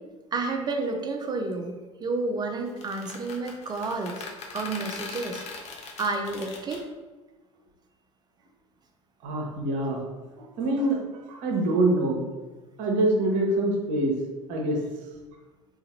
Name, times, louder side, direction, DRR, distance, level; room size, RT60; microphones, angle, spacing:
voice 1, 0.3-4.2 4.5-5.4 6.0-6.9, right 3 dB, 25° right, 4 dB, 0.6 m, -30 dB
sound 1, 2.7-6.8, left 4 dB, 40° left, 0.7 m, -40 dB
voice 2, 9.2-10.0 10.4-11.0 11.3-12.2 12.8-14.1 14.5-14.8, right 2 dB, 50° right, 0 dB, 0.9 m, -25 dB
3.8 x 2.5 x 4.1 m, 1.2 s
figure-of-eight pair, 65°, 17 cm